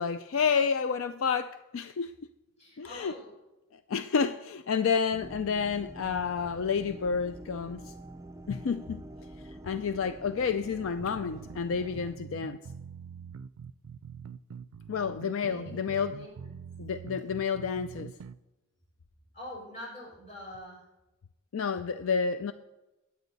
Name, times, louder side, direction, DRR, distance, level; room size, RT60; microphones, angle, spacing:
voice 1, 0.0-2.1 2.8-3.2 3.9-7.9 8.5-9.0 9.4-12.6 14.9-16.2 16.8-18.1 21.5-22.5, left 6 dB, 65° left, 0.4 m, -30 dB
voice 2, 2.6-3.3 15.4-16.5 19.3-20.8, left 1 dB, 35° left, 5.7 m, -45 dB
sound 1, 5.1-12.2, right 1 dB, 15° right, 0.5 m, -46 dB
sound 2, 11.0-18.4, right 6 dB, 85° right, 0.4 m, -45 dB
21.0 x 8.6 x 4.1 m
head